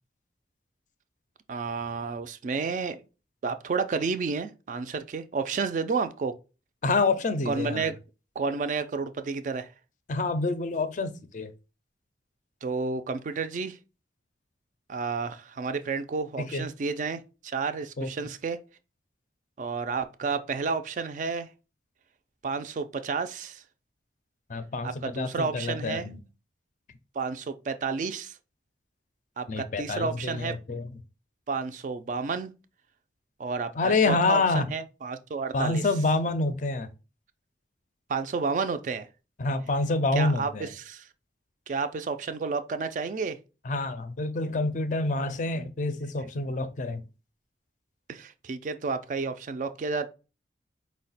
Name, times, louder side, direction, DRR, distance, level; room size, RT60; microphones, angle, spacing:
voice 1, 1.5-3.0 3.4-6.4 7.5-7.9 8.4-9.7 12.6-13.8 14.9-18.6 19.6-21.5 22.4-23.6 24.8-26.1 27.1-28.4 29.4-30.6 31.5-32.5 33.4-35.8 38.1-39.1 40.1-41.1 41.7-43.4 48.1-50.1, right 4 dB, 45° right, 0.3 m, -31 dB
voice 2, 6.8-7.9 10.1-11.5 16.4-16.6 18.0-18.1 24.5-26.2 29.5-30.9 33.8-34.6 35.5-36.9 39.4-40.7 43.7-47.0, left 3 dB, 45° left, 0.4 m, -27 dB
4.6 x 2.1 x 4.0 m
head